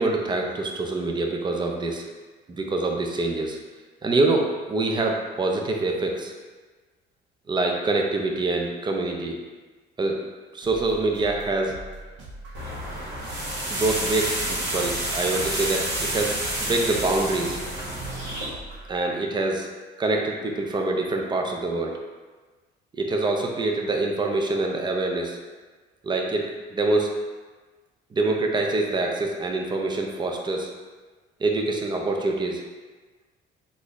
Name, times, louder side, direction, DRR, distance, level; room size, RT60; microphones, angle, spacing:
voice 1, 0.0-2.1 2.5-3.6 4.0-6.3 7.5-9.4 10.0-10.2 10.5-11.8 13.7-17.6 18.9-19.7 20.0-22.0 23.0-25.4 26.0-27.2 28.1-30.7 31.4-32.6, right 2 dB, 25° right, 1 dB, 0.5 m, -25 dB
sound 1, 10.6-19.0, right 2 dB, 85° right, 0.7 m, -42 dB
sound 2, 12.5-18.5, right 1 dB, 70° right, 1.4 m, -29 dB
3.8 x 2.6 x 3.0 m, 1.3 s
cardioid pair, 105°, 19 cm